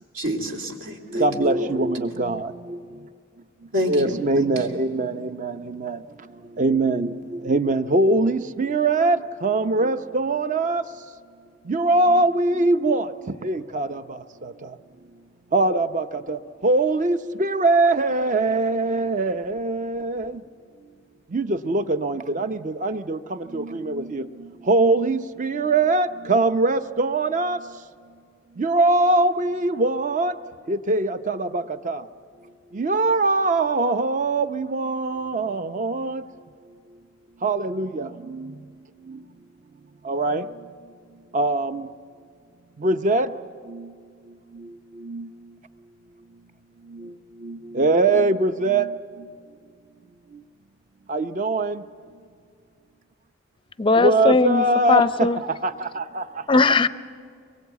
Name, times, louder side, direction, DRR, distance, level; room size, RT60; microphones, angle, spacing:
voice 1, 0.1-1.8 3.7-4.7, equal, 75° right, 1 dB, 2.9 m, -29 dB
voice 2, 1.1-2.5 3.9-6.0 6.6-7.1 7.4-9.2 9.4-10.8 11.7-13.1 13.4-14.0 15.5-20.3 21.3-23.2 23.5-24.2 24.7-27.6 28.6-30.3 30.7-32.0 32.7-36.2 37.4-38.1 40.1-40.4 41.3-41.8 42.8-43.3 45.1-45.3 47.4-48.9 51.1-51.8 53.9-55.3 55.6-56.2, right 2 dB, 40° right, 10 dB, 0.7 m, -22 dB
voice 3, 53.8-55.4 56.5-56.9, left 3 dB, 25° left, 14 dB, 0.5 m, -19 dB
23.5 x 22.5 x 8.2 m, 2.1 s
head